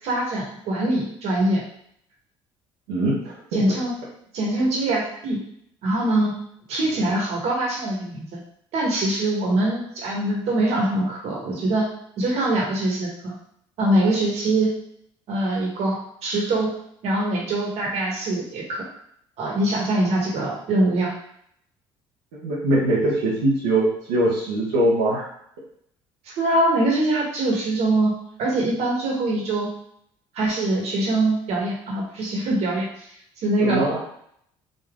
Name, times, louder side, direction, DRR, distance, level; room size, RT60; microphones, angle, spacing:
voice 1, 0.0-1.6 3.5-3.9 4.3-5.4 5.8-6.3 6.7-8.4 8.7-11.9 12.2-13.3 13.8-14.7 15.3-16.0 16.2-16.7 17.0-18.8 19.4-21.1 26.2-29.7 30.3-33.1 33.4-33.9, right 1 dB, 65° right, -2 dB, 1.5 m, -23 dB
voice 2, 2.9-3.4 22.3-25.3 33.6-34.0, right 1 dB, 85° right, -8 dB, 1.1 m, -22 dB
3.9 x 2.6 x 3.7 m, 0.69 s
supercardioid pair, 70°, 12 cm